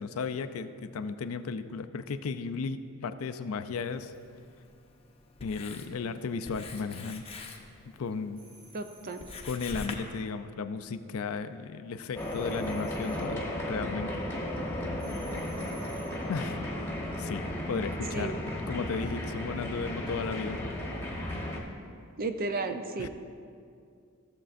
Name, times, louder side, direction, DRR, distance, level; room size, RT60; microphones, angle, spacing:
voice 1, 0.0-4.1 5.4-7.2 8.0-8.4 9.4-14.1 16.3-16.7 17.2-17.4 17.7-18.4 18.7-20.6 23.0-23.1, left 5 dB, 75° left, 10 dB, 0.4 m, -35 dB
Writing, 3.8-9.9, left 3 dB, 25° left, 0.7 m, -46 dB
sound 1, 8.4-9.6 12.2-13.4 15.0-16.2, right 3 dB, 70° right, 1.9 m, -56 dB
voice 2, 8.7-9.3 18.1-18.4 22.2-23.1, right 3 dB, 45° right, 7 dB, 0.5 m, -33 dB
sound 2, 12.1-21.6, left 1 dB, 10° left, 1.1 m, -35 dB
15.0 x 7.3 x 2.5 m, 2.3 s
head